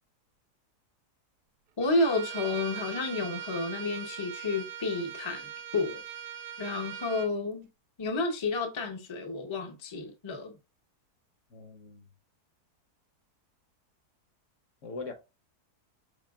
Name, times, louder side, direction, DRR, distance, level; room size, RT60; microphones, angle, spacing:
voice 1, 1.8-6.0 6.6-7.7 8.0-10.6, left 3 dB, 40° left, 0.4 m, -31 dB
Bowed string instrument, 1.8-7.3, right 9 dB, 80° right, 1.1 m, -40 dB
voice 2, 11.5-12.1 14.8-15.1, left 4 dB, 55° left, 1.0 m, -41 dB
5.8 x 3.4 x 2.3 m
omnidirectional pair, 1.7 m